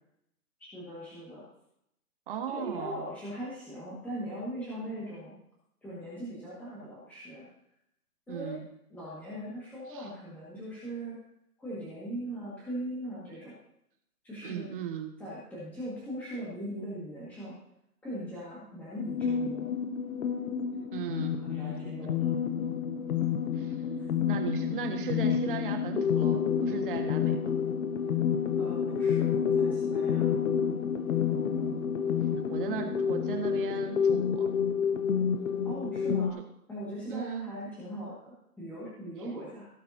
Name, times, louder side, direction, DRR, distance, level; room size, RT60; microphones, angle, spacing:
voice 1, 0.6-1.4 2.5-5.4 5.8-7.5 8.3-8.6 8.9-11.2 11.6-13.6 14.2-14.7 15.2-17.6 18.0-19.7 21.3-22.4 28.6-30.3 35.6-36.4 36.7-39.7, equal, 5° left, -9 dB, 1.8 m, -40 dB
voice 2, 2.3-3.0 8.3-8.7 9.9-10.1 14.4-15.1 20.9-21.4 23.5-23.8 24.3-27.6 31.3-31.9 32.5-34.5 37.1-37.5, right 8 dB, 35° right, 4 dB, 1.6 m, -37 dB
sound 1, 19.0-36.3, left 7 dB, 65° left, 1.0 m, -29 dB
17.0 x 7.7 x 2.8 m, 0.78 s
hypercardioid pair, 160°, 46 cm